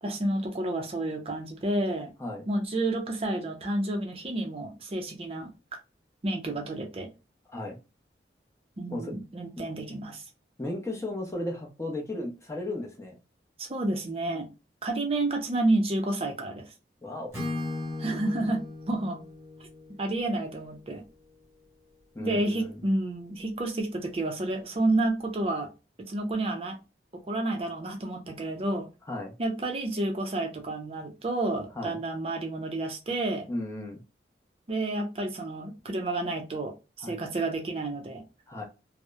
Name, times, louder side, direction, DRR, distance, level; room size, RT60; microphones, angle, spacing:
voice 1, 0.0-2.1 2.5-5.5 6.2-7.1 8.8-10.2 13.6-14.5 14.8-16.7 18.0-18.6 18.9-19.2 20.0-21.0 22.2-25.7 26.0-26.8 27.1-28.9 29.4-33.5 34.7-38.2, right 2 dB, 35° right, 0.4 m, -30 dB
voice 2, 10.6-13.2 17.0-17.3 22.1-22.8 29.1-29.3 31.8-32.0 33.5-34.0 37.0-37.1 38.5-38.6, left 1 dB, 15° left, 0.6 m, -35 dB
Acoustic guitar / Strum, 17.3-21.3, left 2 dB, 15° right, 1.1 m, -38 dB
2.7 x 2.0 x 2.2 m
head